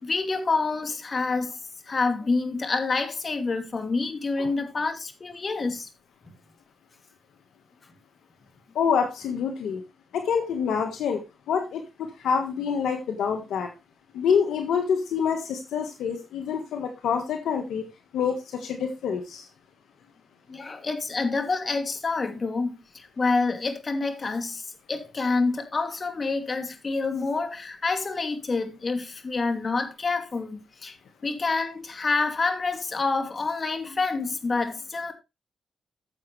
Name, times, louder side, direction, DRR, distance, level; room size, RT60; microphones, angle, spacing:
voice 1, 0.0-1.6 1.9-5.9 20.5-24.6 24.9-31.0 31.2-35.1, left 3 dB, 45° left, 2.6 m, -27 dB
voice 2, 8.7-9.8 10.1-11.2 11.5-13.7 14.1-17.8 18.1-19.5, left 6 dB, 85° left, 1.5 m, -26 dB
14.5 x 7.4 x 3.3 m
supercardioid pair, 50°, 0 cm